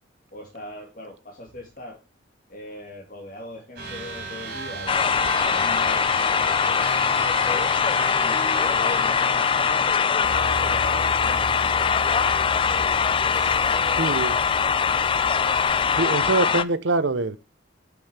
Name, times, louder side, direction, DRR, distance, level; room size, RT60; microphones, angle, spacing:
voice 1, 0.3-2.0 2.5-7.7 8.2-12.3 12.6-14.2 14.8-15.1, left 1 dB, 45° left, 2.3 m, -40 dB
sound 1, 3.8-9.9, right 3 dB, 55° right, 3.7 m, -35 dB
sound 2, 4.9-16.6, left 6 dB, 25° left, 0.4 m, -22 dB
sound 3, 10.2-16.0, equal, 75° left, 2.4 m, -36 dB
voice 2, 14.0-14.4 16.0-17.4, right 3 dB, 75° right, 0.9 m, -24 dB
8.4 x 7.7 x 3.4 m
head